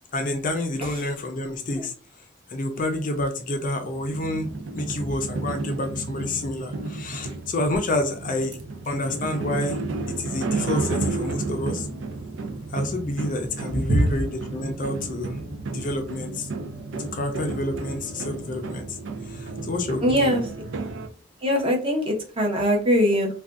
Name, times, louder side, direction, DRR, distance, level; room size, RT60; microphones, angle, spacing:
voice 1, 0.1-8.6 8.9-11.9 12.7-16.5 17.0-20.4, left 1 dB, 45° left, 5 dB, 0.4 m, -29 dB
sound 1, 3.9-21.1, right 3 dB, 70° right, 0.4 m, -32 dB
voice 2, 20.0-20.4 21.4-23.3, equal, 30° right, 0 dB, 0.8 m, -21 dB
2.5 x 2.2 x 3.5 m, 0.39 s
head